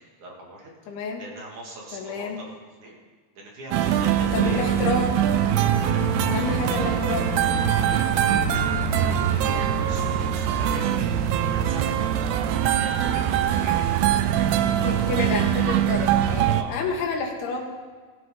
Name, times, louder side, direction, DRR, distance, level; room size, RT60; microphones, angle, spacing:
voice 1, 0.2-2.5 2.8-3.0 3.3-4.7 5.8-6.3 7.8-8.3 8.9-15.1 16.2-16.7, right 1 dB, 50° right, -2 dB, 3.1 m, -41 dB
voice 2, 0.9-1.2 1.9-2.4 4.2-5.1 6.3-7.3 9.7-9.9 14.9-17.6, left 4 dB, 90° left, 0 dB, 4.2 m, -29 dB
sound 1, 3.7-16.5, right 1 dB, 60° left, 5.1 m, -34 dB
sound 2, 3.7-16.6, right 10 dB, 85° right, 2.4 m, -23 dB
17.0 x 14.0 x 3.8 m, 1.5 s
omnidirectional pair, 5.2 m